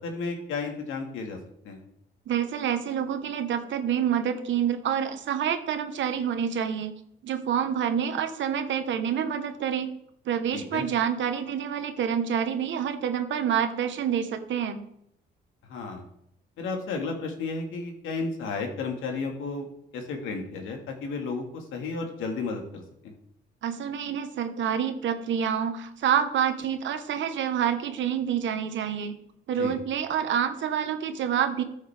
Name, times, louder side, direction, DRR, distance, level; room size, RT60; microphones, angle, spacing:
voice 1, 0.0-1.4 1.6-1.8 10.5-10.8 15.7-16.1 16.6-19.7 19.9-23.1 29.6-29.7, left 4 dB, 85° left, 3 dB, 2.0 m, -33 dB
voice 2, 2.3-6.9 7.2-9.9 10.2-14.8 23.6-29.1 29.5-31.6, right 8 dB, 70° right, 8 dB, 1.2 m, -27 dB
13.5 x 6.4 x 3.5 m, 0.74 s
cardioid pair, 90°, 20 cm